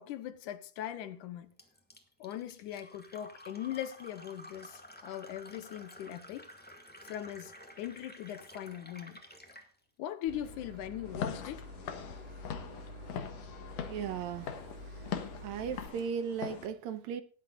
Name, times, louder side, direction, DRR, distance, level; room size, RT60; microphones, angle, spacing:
voice 1, 0.0-1.5 2.2-6.5 7.1-9.2 10.0-11.7, left 11 dB, 80° left, 2.5 m, -40 dB
Fill (with liquid), 1.6-9.7, equal, 5° left, 1.2 m, -52 dB
Boat Water vehicle / Engine, 10.3-15.9, left 1 dB, 30° right, 2.9 m, -48 dB
Walk footsteps / Siren, 11.0-16.7, left 8 dB, 60° left, 2.4 m, -41 dB
voice 2, 13.9-14.6 15.0-15.1 15.4-17.2, right 7 dB, 70° right, 2.0 m, -36 dB
19.0 x 11.0 x 2.5 m
omnidirectional pair, 3.6 m